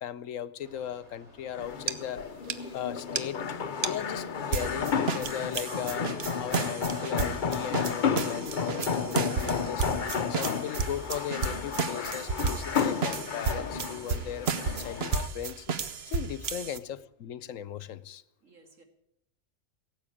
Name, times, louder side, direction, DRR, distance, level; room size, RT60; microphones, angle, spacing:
voice 1, 0.0-2.2 2.7-3.5 3.8-6.0 6.4-9.8 10.3-14.5 14.8-15.7 16.1-18.2, left 10 dB, 90° left, 16 dB, 1.1 m, -37 dB
Mechanical fan, 0.6-14.8, left 1 dB, 40° right, 3.5 m, -56 dB
sound 1, 1.5-15.3, left 6 dB, 45° left, 0.8 m, -32 dB
sound 2, 1.9-2.0 2.2-2.3 2.5-2.6 3.2-3.3 3.8-3.9 4.5-16.8, right 5 dB, 55° right, 1.1 m, -33 dB
voice 2, 18.4-18.8, right 3 dB, 85° right, 4 dB, 2.7 m, -57 dB
17.5 x 8.6 x 8.5 m, 0.81 s
omnidirectional pair, 1.3 m